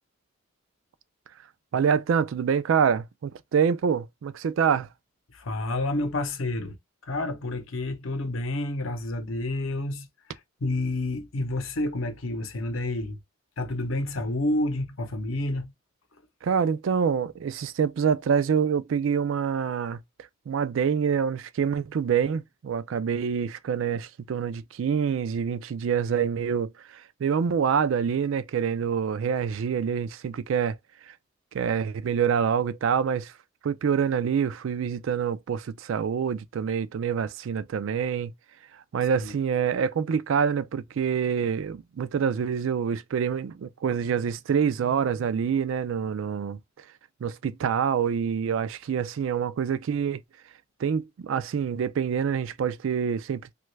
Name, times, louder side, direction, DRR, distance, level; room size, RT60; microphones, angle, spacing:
voice 1, 1.7-4.9 16.4-20.0 20.5-30.8 31.5-33.3 33.6-38.3 38.9-46.6 47.2-50.2 50.8-53.5, right 7 dB, 65° right, 0.3 m, -26 dB
voice 2, 5.3-6.8 7.0-10.1 10.6-13.2 13.6-15.7 39.1-39.3, left 2 dB, 70° left, 0.7 m, -29 dB
3.1 x 2.3 x 3.1 m
head